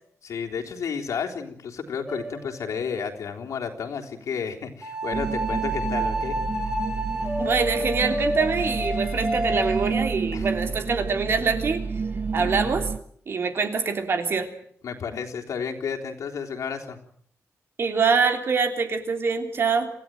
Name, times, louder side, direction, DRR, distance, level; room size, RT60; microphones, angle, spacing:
voice 1, 0.2-6.4 10.3-10.8 11.2-11.3 12.4-12.7 14.8-17.0, left 6 dB, 90° left, 2 dB, 3.7 m, -32 dB
sound 1, 2.1-2.8 4.8-9.9, right 1 dB, 10° right, 4.7 m, -30 dB
sound 2, 5.1-13.0, right 5 dB, 35° right, 1.3 m, -30 dB
voice 2, 7.4-11.8 12.3-12.9 13.3-14.5 17.8-19.9, right 5 dB, 50° right, 7 dB, 3.2 m, -24 dB
27.5 x 16.0 x 9.2 m, 0.63 s
wide cardioid pair, 170°, 5 cm